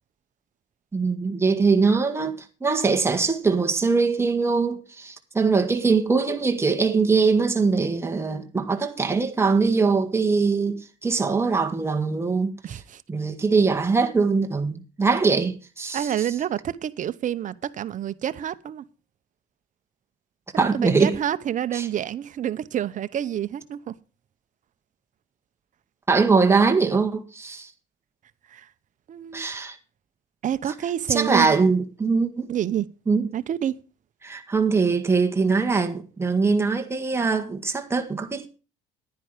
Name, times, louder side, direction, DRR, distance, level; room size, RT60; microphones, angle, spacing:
voice 1, 0.9-2.3 2.6-12.5 13.1-16.1 20.6-21.1 21.7-21.9 26.1-27.7 29.3-29.8 31.1-32.5 33.1-33.3 34.2-38.5, right 4 dB, 15° right, 1.7 m, -22 dB
voice 2, 12.6-13.0 15.9-18.8 20.5-23.9 28.5-28.7 29.1-29.5 30.4-31.6 32.5-32.9 33.3-33.7, right 10 dB, 50° right, 0.9 m, -28 dB
10.5 x 10.0 x 5.0 m
cardioid pair, 110°, 17 cm